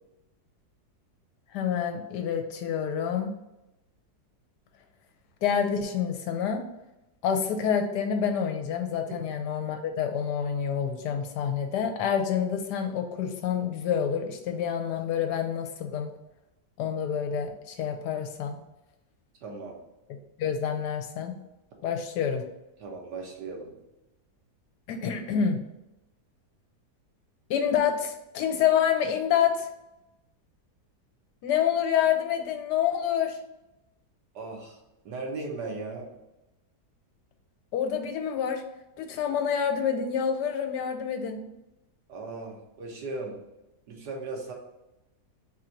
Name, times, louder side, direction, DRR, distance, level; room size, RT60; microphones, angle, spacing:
voice 1, 1.5-3.3 5.4-6.6 7.2-16.1 16.8-18.6 20.4-21.3 21.8-22.4 24.9-25.6 27.5-29.7 31.4-33.4 37.7-38.6 39.0-41.4, left 8 dB, 80° left, 5 dB, 1.2 m, -27 dB
voice 2, 19.4-19.8 22.8-23.8 34.3-34.8 35.0-36.1 42.1-43.4 43.9-44.5, right 3 dB, 85° right, 0 dB, 1.6 m, -37 dB
4.2 x 2.6 x 4.4 m, 0.94 s
omnidirectional pair, 1.8 m